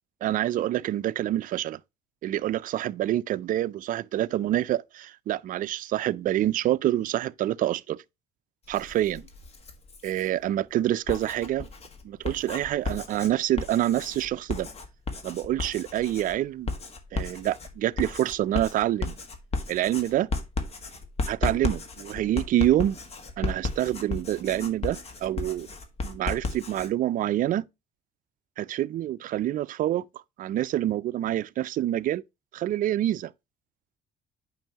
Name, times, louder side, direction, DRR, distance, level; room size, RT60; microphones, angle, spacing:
voice 1, 0.2-1.8 2.2-8.0 8.7-9.3 10.0-11.7 12.0-14.7 15.2-16.7 17.1-19.2 19.7-20.3 21.3-23.0 23.4-25.7 26.0-27.6 28.6-30.0 30.4-32.2 32.5-33.3, right 13 dB, 55° right, 0.4 m, -27 dB
Writing, 8.7-10.3 10.9-26.9, left 3 dB, 40° left, 1.6 m, -34 dB
9.0 x 5.4 x 2.9 m
cardioid pair, 110°, 17 cm